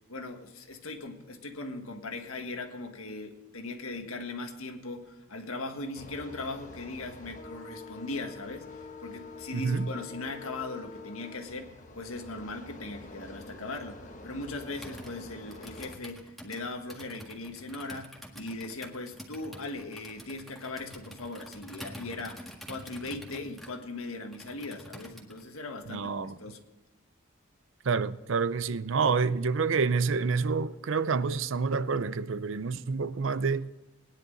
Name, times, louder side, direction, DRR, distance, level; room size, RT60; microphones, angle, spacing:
voice 1, 0.1-26.6, left 2 dB, 90° left, 1.6 m, -39 dB
sound 1, 6.0-15.9, left 3 dB, 35° left, 1.1 m, -46 dB
voice 2, 9.5-9.9 25.9-26.3 27.8-33.7, right 5 dB, 65° right, 0.5 m, -28 dB
Computer keyboard, 14.7-25.5, equal, ahead, 1.7 m, -47 dB
19.5 x 10.5 x 3.9 m
head